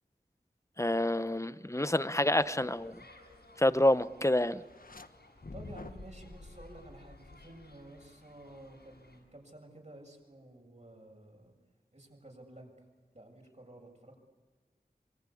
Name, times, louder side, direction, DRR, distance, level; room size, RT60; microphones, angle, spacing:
voice 1, 0.8-3.0 3.6-4.6, left 1 dB, 15° left, 13 dB, 0.9 m, -28 dB
sound 1, 2.2-9.2, left 2 dB, 80° left, 7.5 m, -59 dB
sound 2, 4.6-5.1 5.4-8.0, left 2 dB, 60° left, 1.3 m, -48 dB
voice 2, 5.5-11.6 11.9-12.9 13.1-14.2, right 1 dB, 45° right, 1 dB, 7.4 m, -52 dB
25.0 x 24.0 x 8.6 m, 1.4 s
wide cardioid pair, 45°, 17 cm